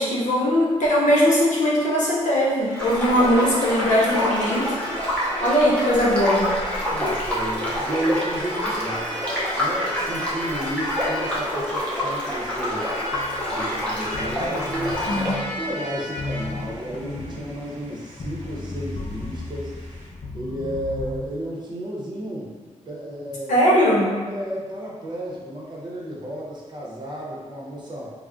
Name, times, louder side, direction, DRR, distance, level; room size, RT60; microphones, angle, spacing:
voice 1, 0.0-4.8 5.4-6.5 15.1-15.4 23.5-24.1, equal, 80° left, -5 dB, 0.7 m, -20 dB
sound 1, 2.6-20.1, equal, 90° right, 0.8 m, -37 dB
sound 2, 2.8-15.3, left 1 dB, 10° left, 0.7 m, -27 dB
voice 2, 6.9-9.2 9.6-12.9 13.5-15.0 15.6-19.7 20.3-22.5 22.9-23.6 24.3-28.1, right 1 dB, 35° right, -5 dB, 0.7 m, -32 dB
sound 3, 13.1-21.3, left 2 dB, 45° left, 0.4 m, -35 dB
2.3 x 2.0 x 3.6 m, 1.4 s
wide cardioid pair, 120°, 13 cm